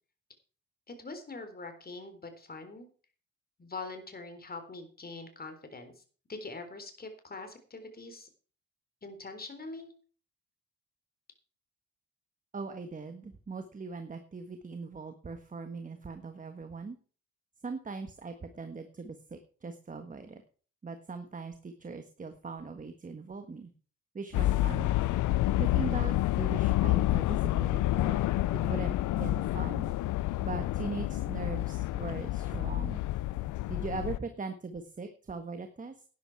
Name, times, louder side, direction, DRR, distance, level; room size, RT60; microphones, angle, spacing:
voice 1, 0.9-2.9 3.6-6.0 6.3-8.3 9.0-9.9, left 3 dB, 30° left, 7 dB, 3.8 m, -43 dB
voice 2, 12.5-17.0 17.6-20.4 20.8-23.7 24.1-25.0 25.6-28.3 28.5-33.0 33.7-36.0, right 4 dB, 25° right, 7 dB, 1.5 m, -40 dB
sound 1, 24.3-34.2, left 16 dB, 80° left, 0.6 m, -29 dB
12.0 x 10.0 x 4.7 m, 0.40 s
cardioid pair, 90°, 30 cm